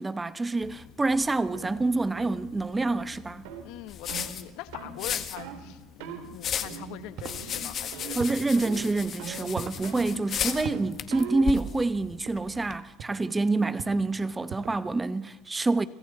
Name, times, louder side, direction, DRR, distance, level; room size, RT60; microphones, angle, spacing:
voice 1, 0.0-3.5 8.1-15.9, right 3 dB, 15° right, 0.9 m, -27 dB
sound 1, 0.6-12.8, left 8 dB, 40° left, 1.7 m, -37 dB
sound 2, 1.5-1.7 2.2-2.4 2.8-3.0 3.4-3.7 4.1-4.3 4.7-5.0 5.4-5.6 6.0-6.2 6.6-7.0 7.3-7.6 7.9-8.3 8.6-8.9 9.2-11.5, right 8 dB, 85° right, 3.6 m, -40 dB
voice 2, 3.6-8.2, left 15 dB, 70° left, 1.5 m, -43 dB
sound 3, 7.2-7.4 8.2-8.5 9.6-9.8 10.6-10.9 12.1-12.4 13.0-13.2 13.8-14.1 14.5-14.8, right 8 dB, 50° right, 1.9 m, -39 dB
30.0 x 25.5 x 4.3 m
supercardioid pair, 120°, 0 cm